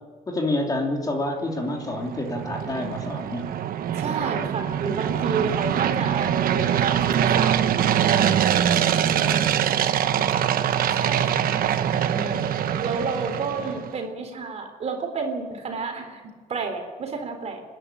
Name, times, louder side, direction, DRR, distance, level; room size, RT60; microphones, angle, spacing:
voice 1, 0.3-3.5 8.5-9.5 13.6-13.7, left 1 dB, 25° left, 1 dB, 3.1 m, -29 dB
sound 1, 1.6-13.9, right 9 dB, 80° right, 1.1 m, -23 dB
voice 2, 4.0-9.1 10.7-12.5 12.8-17.6, right 4 dB, 45° right, 4 dB, 3.8 m, -31 dB
28.5 x 11.0 x 8.9 m, 1.5 s
cardioid pair, 145°, 15 cm